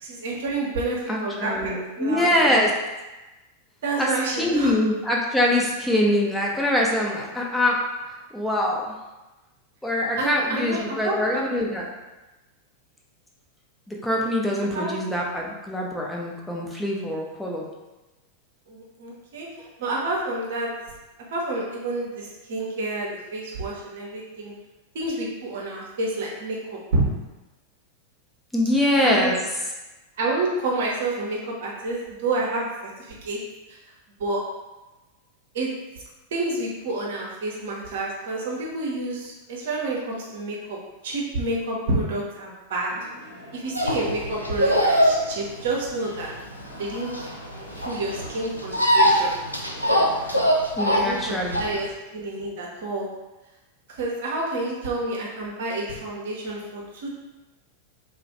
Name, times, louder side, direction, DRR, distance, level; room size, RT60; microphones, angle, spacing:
voice 1, 0.0-1.7 2.0-2.6 3.8-4.7 10.2-11.4 14.7-14.9 18.7-19.5 19.8-20.7 21.3-24.5 24.9-26.6 26.9-27.0 29.0-29.3 30.2-32.7 33.0-33.4 33.7-33.8 34.2-34.4 35.5-35.7 36.3-40.8 41.0-42.9 43.5-46.3 46.8-47.2 47.8-49.4 50.9-53.1 53.9-57.1, right 2 dB, 55° right, -2 dB, 0.7 m, -29 dB
voice 2, 1.1-2.7 4.0-4.1 4.4-8.9 9.8-11.9 13.9-17.7 19.6-19.7 28.5-29.4 50.8-51.7, left 1 dB, 5° left, -3 dB, 0.6 m, -24 dB
sound 1, 42.9-50.5, equal, 70° left, 0.8 m, -44 dB
sound 2, 43.8-51.9, equal, 90° left, 0.3 m, -22 dB
2.4 x 2.1 x 3.9 m, 1.1 s
figure-of-eight pair, 90°, 0 cm